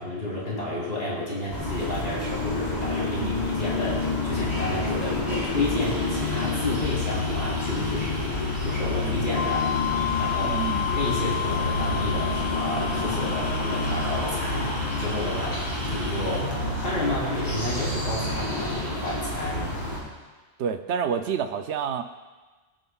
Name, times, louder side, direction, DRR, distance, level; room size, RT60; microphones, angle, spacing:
voice 1, 0.0-9.7 10.2-15.6 15.9-16.5 16.8-19.8, left 1 dB, 65° left, -6 dB, 3.7 m, -31 dB
sound 1, 1.5-20.0, left 2 dB, 40° left, 3.9 m, -28 dB
sound 2, 5.0-18.4, equal, 25° left, 2.6 m, -41 dB
sound 3, 9.3-15.9, left 11 dB, 10° right, 1.4 m, -32 dB
voice 2, 10.4-10.9 20.6-22.0, right 7 dB, 80° right, 8 dB, 0.9 m, -28 dB
20.0 x 9.2 x 2.3 m, 1.3 s
omnidirectional pair, 1.1 m